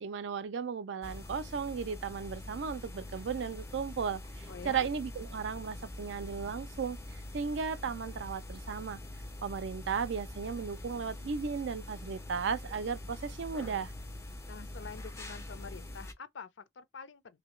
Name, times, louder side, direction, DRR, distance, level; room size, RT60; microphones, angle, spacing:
voice 1, 0.0-9.0 9.4-13.9, right 6 dB, 65° right, 0.4 m, -35 dB
sound 1, 1.0-16.1, left 1 dB, 15° left, 0.4 m, -44 dB
voice 2, 4.5-4.9 14.5-17.4, left 5 dB, 70° left, 0.5 m, -47 dB
3.0 x 2.7 x 3.1 m
head